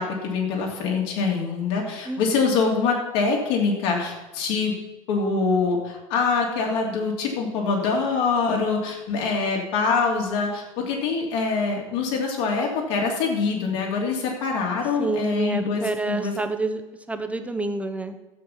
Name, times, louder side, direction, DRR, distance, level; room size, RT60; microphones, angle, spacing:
voice 1, 0.0-4.7 5.1-16.3, left 4 dB, 60° left, 0 dB, 3.0 m, -24 dB
voice 2, 2.1-2.5 15.0-16.8 17.1-18.2, right 3 dB, 10° right, 7 dB, 1.1 m, -28 dB
12.0 x 8.0 x 5.7 m, 1.0 s
figure-of-eight pair, 75°, 17 cm